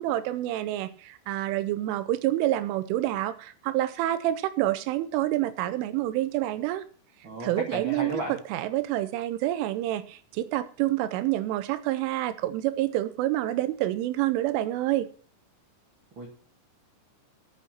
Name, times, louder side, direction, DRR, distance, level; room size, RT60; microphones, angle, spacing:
voice 1, 0.0-6.8 7.4-15.1, right 14 dB, 85° right, 13 dB, 3.2 m, -28 dB
voice 2, 7.2-8.4 16.1-16.3, right 1 dB, 60° right, 1 dB, 1.3 m, -34 dB
11.5 x 8.4 x 5.8 m, 0.42 s
omnidirectional pair, 5.6 m